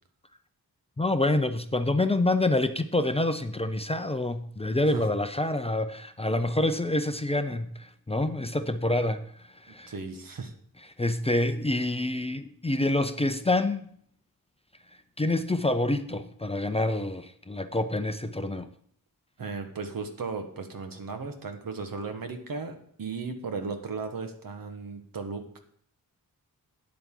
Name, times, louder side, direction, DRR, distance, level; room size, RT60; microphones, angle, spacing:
voice 1, 1.0-9.9 11.0-13.9 15.2-18.7, left 2 dB, 15° left, 8 dB, 0.5 m, -27 dB
voice 2, 9.9-10.5 19.4-25.6, right 4 dB, 70° right, 6 dB, 1.5 m, -36 dB
13.0 x 9.4 x 3.8 m, 0.62 s
wide cardioid pair, 135°, 35 cm